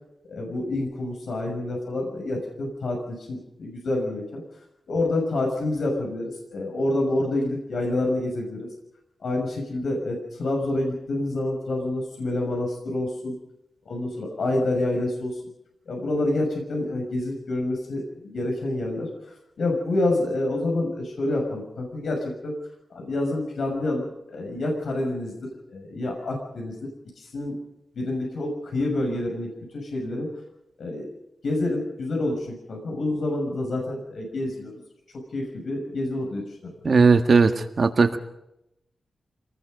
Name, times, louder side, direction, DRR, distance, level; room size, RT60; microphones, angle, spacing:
voice 1, 0.3-4.4 4.9-8.7 9.2-13.3 13.8-15.4 15.9-22.5 22.9-26.9 27.2-27.5 27.9-30.3 30.8-31.1 31.4-34.7 35.1-36.9, left 2 dB, 80° left, 1 dB, 6.3 m, -28 dB
voice 2, 36.9-38.2, right 4 dB, 55° right, 7 dB, 1.7 m, -18 dB
27.0 x 19.5 x 5.3 m, 0.84 s
wide cardioid pair, 105°, 0 cm